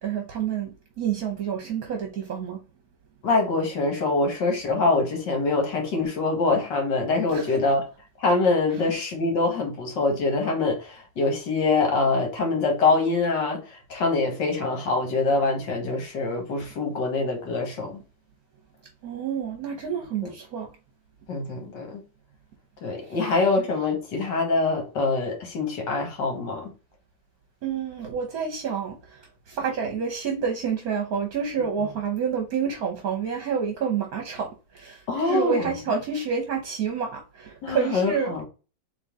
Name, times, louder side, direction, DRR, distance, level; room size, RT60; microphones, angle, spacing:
voice 1, 0.0-2.6 7.3-7.6 19.0-20.7 27.6-29.2 29.5-38.3, right 6 dB, 60° right, 1.2 m, -28 dB
voice 2, 3.2-7.8 8.2-18.0 20.2-20.3 21.3-22.0 22.8-26.7 35.1-35.7 37.6-38.4, left 3 dB, 70° left, 2.0 m, -24 dB
3.9 x 3.4 x 3.5 m
omnidirectional pair, 2.0 m